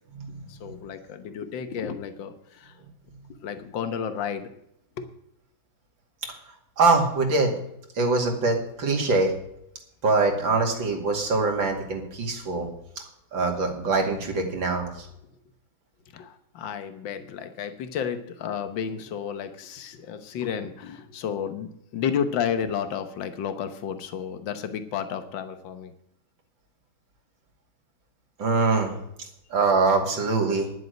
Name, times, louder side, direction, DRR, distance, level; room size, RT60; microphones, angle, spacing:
voice 1, 0.5-2.8 3.4-4.5 5.0-5.1 16.1-25.9, left 8 dB, 80° left, 10 dB, 1.8 m, -32 dB
voice 2, 6.8-7.5 7.9-9.3 10.0-12.7 13.3-15.1 28.4-28.9 29.5-30.7, right 3 dB, 90° right, 2 dB, 3.1 m, -23 dB
11.0 x 7.8 x 7.9 m, 0.77 s
omnidirectional pair, 2.0 m